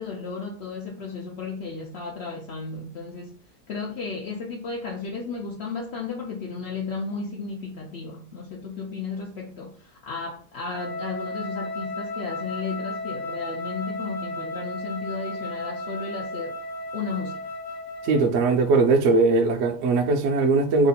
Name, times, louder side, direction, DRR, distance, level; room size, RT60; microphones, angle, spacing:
voice 1, 0.0-3.4 3.7-16.6 16.9-17.5, left 4 dB, 80° left, 0.6 m, -34 dB
Wind instrument woodwind instrument, 10.7-18.4, left 1 dB, 60° left, 1.3 m, -34 dB
voice 2, 18.0-20.9, right 3 dB, 65° right, 0.8 m, -20 dB
3.0 x 2.4 x 4.1 m
omnidirectional pair, 1.7 m